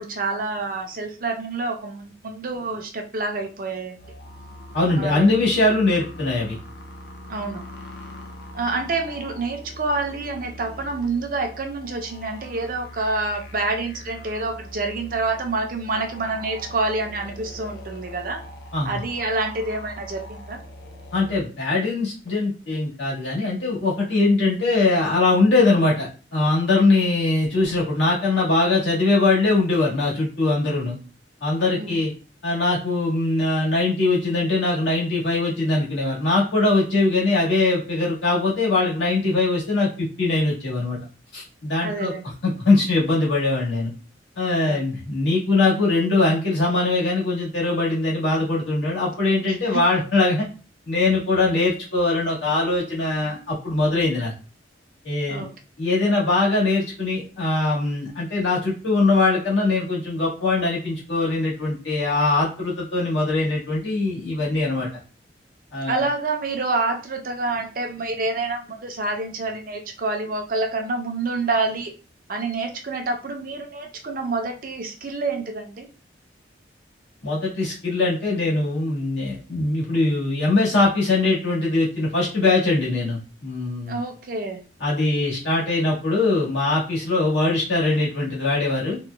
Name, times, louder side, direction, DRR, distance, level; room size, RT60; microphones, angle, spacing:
voice 1, 0.0-4.0 5.0-5.3 7.3-7.6 8.5-18.4 18.8-20.6 31.8-32.0 41.8-42.2 44.7-44.8 49.5-49.8 55.3-55.5 65.9-71.9 72.3-75.9 83.9-84.6, right 3 dB, 50° right, 4 dB, 0.5 m, -27 dB
sound 1, 4.0-21.4, left 1 dB, 60° left, 0.5 m, -41 dB
voice 2, 4.7-6.6 18.7-19.0 21.1-31.0 31.4-32.1 32.4-41.0 41.3-42.1 42.4-43.9 44.3-50.5 50.8-54.3 55.0-55.4 55.8-64.9 65.7-66.1 77.2-84.0 84.8-89.0, left 2 dB, 85° left, -6 dB, 1.6 m, -21 dB
3.0 x 2.2 x 3.3 m, 0.36 s
head